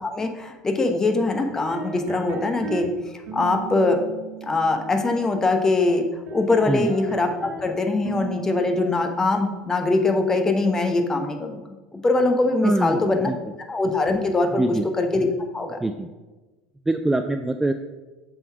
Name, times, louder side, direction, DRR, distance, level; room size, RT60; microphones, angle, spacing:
voice 1, 0.0-2.9 3.3-4.0 4.4-6.1 6.3-11.6 11.9-13.3 13.7-15.3 15.5-15.8, left 2 dB, 20° left, 5 dB, 1.0 m, -22 dB
sound 1, 1.5-2.9 3.3-5.8 6.3-7.7 8.0-10.0, right 6 dB, 55° right, 1.5 m, -37 dB
voice 2, 12.6-13.4 14.6-14.9 15.8-16.1 16.9-17.7, right 2 dB, 10° right, 7 dB, 0.3 m, -24 dB
6.7 x 3.9 x 4.6 m, 1.2 s
hypercardioid pair, 80°, 3 cm